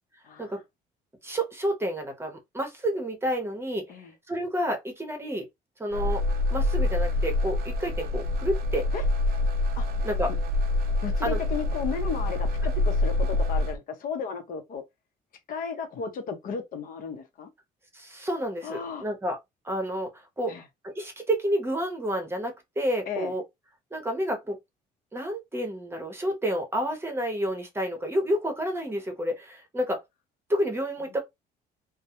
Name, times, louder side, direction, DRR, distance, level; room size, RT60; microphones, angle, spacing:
voice 1, 0.2-0.5 3.9-4.1 8.9-9.0 9.8-9.9 11.0-14.8 15.5-17.5 18.6-19.0 20.5-20.6 23.1-23.3, left 6 dB, 55° left, 0.7 m, -34 dB
voice 2, 1.2-3.9 4.3-5.5 5.8-6.2 6.5-8.9 10.0-10.3 11.2-11.4 17.9-19.4 19.6-20.5 20.8-23.4 23.9-24.6 25.1-30.0 30.5-31.2, equal, 15° right, 0.8 m, -29 dB
sound 1, 5.9-13.8, left 2 dB, 65° right, 0.5 m, -26 dB
2.2 x 2.1 x 2.8 m
cardioid pair, 110°, 17 cm